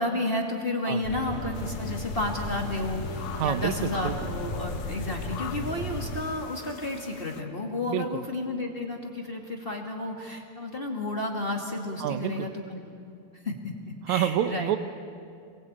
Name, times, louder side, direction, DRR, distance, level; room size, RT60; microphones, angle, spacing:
voice 1, 0.0-12.9 13.4-13.7 14.1-14.7, left 2 dB, 25° left, 1 dB, 1.4 m, -32 dB
sound 1, 1.0-6.2, left 2 dB, 55° left, 5.3 m, -35 dB
sound 2, 1.5-7.4, left 10 dB, 75° left, 2.4 m, -44 dB
voice 2, 3.3-4.3 7.9-8.2 12.0-12.5 14.1-14.8, right 11 dB, 70° right, 11 dB, 1.9 m, -28 dB
27.0 x 22.5 x 8.8 m, 2.4 s
omnidirectional pair, 4.3 m